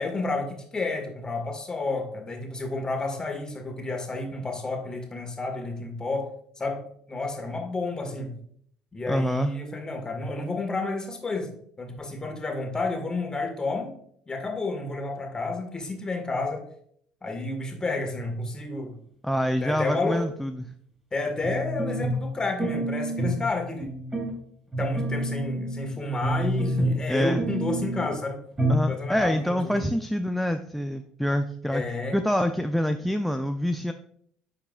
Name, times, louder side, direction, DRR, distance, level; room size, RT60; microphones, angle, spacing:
voice 1, 0.0-6.3 6.6-6.8 7.1-8.3 8.9-11.5 11.8-13.9 14.3-16.7 17.2-18.9 19.6-20.2 21.1-23.9 24.8-28.4 28.9-29.9 31.7-32.2, left 3 dB, 25° left, 3 dB, 1.8 m, -30 dB
voice 2, 9.1-9.5 19.2-20.7 27.1-27.4 28.7-31.8 32.1-33.9, equal, ahead, 9 dB, 0.4 m, -26 dB
sound 1, 21.4-22.3 22.6-23.5 23.8-24.3 24.7-25.9 26.2-27.1 27.4-28.1 28.6-28.9 29.2-29.3, right 1 dB, 20° right, 3.0 m, -27 dB
10.0 x 4.8 x 2.4 m, 0.64 s
hypercardioid pair, 60°, 3 cm